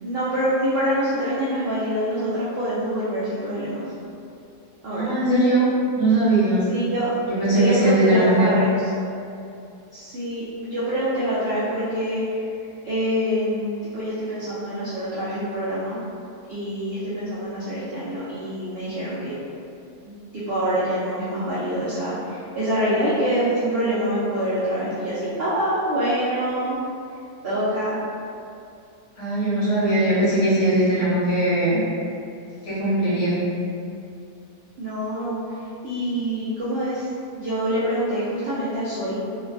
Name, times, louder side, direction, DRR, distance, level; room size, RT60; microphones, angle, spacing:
voice 1, 0.0-3.8 4.8-5.1 6.7-7.1 7.5-8.7 9.9-12.4 12.8-16.0 16.5-19.3 20.0-26.8 27.4-27.9 34.8-39.2, equal, 70° right, -11 dB, 0.5 m, -25 dB
voice 2, 4.9-5.7 6.0-6.6 7.2-8.6 29.2-31.8 32.6-33.5, right 1 dB, 65° left, -11 dB, 1.4 m, -20 dB
3.1 x 2.2 x 2.4 m, 2.5 s
omnidirectional pair, 1.7 m